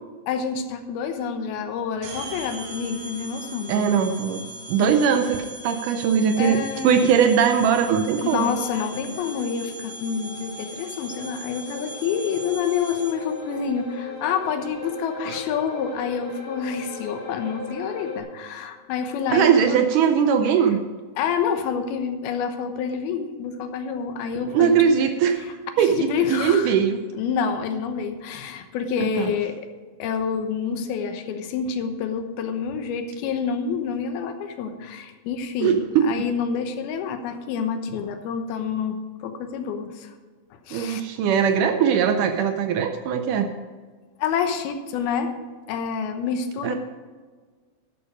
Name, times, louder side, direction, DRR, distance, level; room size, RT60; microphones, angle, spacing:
voice 1, 0.3-3.9 4.8-4.9 6.4-7.1 8.2-19.8 20.1-20.5 21.2-24.9 25.8-26.7 27.1-29.7 30.0-40.1 40.5-41.0 44.2-45.3 45.7-46.8, left 6 dB, 80° left, 7 dB, 2.9 m, -28 dB
sound 1, 2.0-13.4, right 1 dB, 65° right, 3.6 m, -39 dB
voice 2, 3.7-8.5 15.3-15.4 19.3-20.8 24.4-25.5 25.8-27.0 29.0-29.3 35.6-36.1 40.7-43.5 46.6-46.8, right 7 dB, 85° right, 7 dB, 1.8 m, -20 dB
sound 2, 8.0-18.2, left 2 dB, 45° left, 5.1 m, -38 dB
11.5 x 10.5 x 5.1 m, 1.5 s
omnidirectional pair, 4.4 m